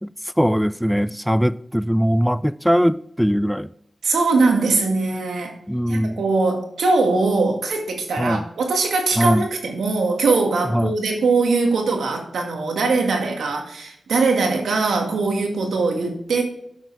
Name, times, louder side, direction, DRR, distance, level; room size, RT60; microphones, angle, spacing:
voice 1, 0.0-3.7 5.7-6.3 8.2-8.5 9.2-9.5 10.6-11.0, equal, ahead, 0.4 m, -21 dB
voice 2, 4.0-5.6 5.9-16.4, right 3 dB, 90° right, 1.8 m, -21 dB
9.2 x 7.3 x 3.3 m
cardioid pair, 40°, 0 cm